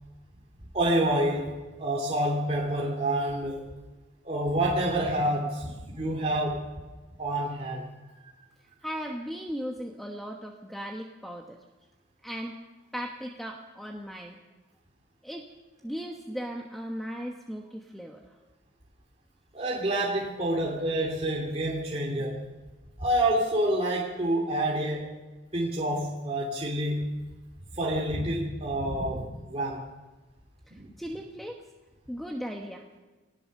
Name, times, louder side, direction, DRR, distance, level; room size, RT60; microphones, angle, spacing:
voice 1, 0.7-1.5 1.8-3.6 4.2-6.7 7.2-7.8 19.5-22.5 23.0-25.1 25.5-27.1 27.7-29.9 30.8-30.9, right 1 dB, 30° right, -3 dB, 2.9 m, -28 dB
voice 2, 8.8-11.6 12.2-12.5 12.9-14.4 15.2-15.5 15.8-18.2 30.7-31.6 32.1-32.9, equal, ahead, 1 dB, 1.2 m, -37 dB
21.5 x 18.5 x 6.6 m, 1.2 s
head